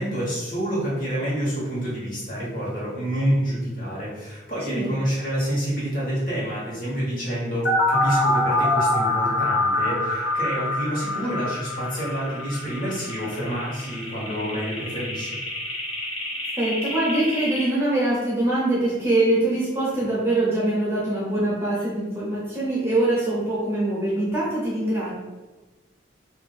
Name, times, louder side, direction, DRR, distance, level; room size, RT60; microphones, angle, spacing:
voice 1, 0.0-15.4, equal, 45° left, -7 dB, 1.3 m, -28 dB
sound 1, 7.7-17.6, left 2 dB, 90° left, 1.0 m, -25 dB
voice 2, 16.5-25.1, right 1 dB, 15° right, -7 dB, 0.9 m, -23 dB
3.0 x 2.5 x 4.0 m, 1.2 s
head